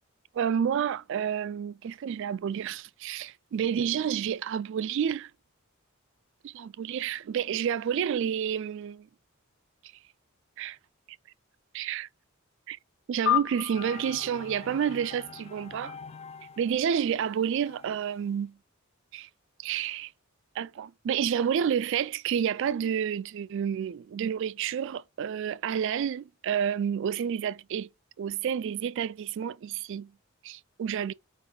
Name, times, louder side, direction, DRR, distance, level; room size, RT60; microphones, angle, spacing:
voice 1, 0.3-5.3 6.4-9.1 10.6-10.8 11.7-12.1 12.7-12.8 13.1-16.0 16.6-18.5 19.1-19.3 19.6-20.1 20.6-27.9 28.2-30.1 30.4-31.1, right 8 dB, 60° right, 0.3 m, -29 dB
sound 1, 13.2-16.0, left 11 dB, 70° left, 0.8 m, -32 dB
sound 2, 13.7-18.3, left 5 dB, 30° left, 0.3 m, -47 dB
4.7 x 4.0 x 5.2 m
head